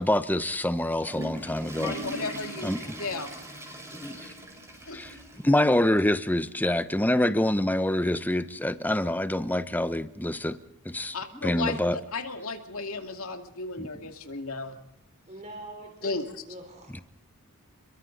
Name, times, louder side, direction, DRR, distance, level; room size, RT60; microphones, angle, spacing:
voice 1, 0.0-1.9 2.6-2.8 4.0-4.2 4.9-5.1 5.4-10.6 10.8-11.1 11.4-12.0 13.8-13.9, left 1 dB, 10° left, 0.9 m, -26 dB
Water / Toilet flush, 0.7-5.7 6.0-6.1 6.8-6.9 8.2-8.3, right 1 dB, 15° right, 5.4 m, -40 dB
voice 2, 1.8-3.3 4.9-5.0 11.1-14.8 16.0-16.2, left 3 dB, 65° left, 2.5 m, -34 dB
voice 3, 2.5-3.0 15.3-16.2 16.5-17.0, right 1 dB, 30° right, 3.8 m, -44 dB
29.5 x 23.0 x 4.0 m
head